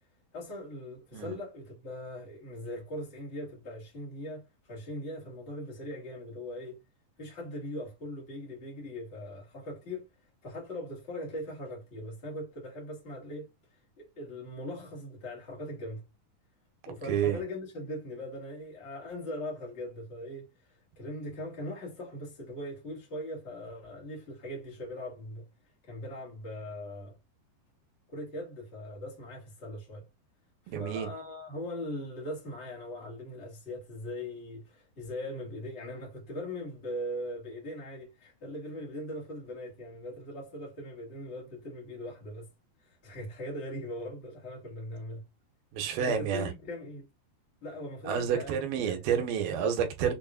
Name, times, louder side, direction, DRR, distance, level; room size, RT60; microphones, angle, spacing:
voice 1, 0.3-6.8 7.2-10.1 10.4-13.5 14.0-16.0 16.9-20.5 21.0-25.4 25.9-27.1 28.1-30.1 30.8-42.5 43.0-45.2 46.0-47.0 47.6-48.6 48.9-49.0, left 1 dB, 40° left, 0.9 m, -40 dB
voice 2, 17.1-17.4 30.7-31.1 45.7-46.5 48.1-50.1, right 8 dB, 90° right, 2.6 m, -29 dB
6.3 x 2.3 x 2.4 m
omnidirectional pair, 4.2 m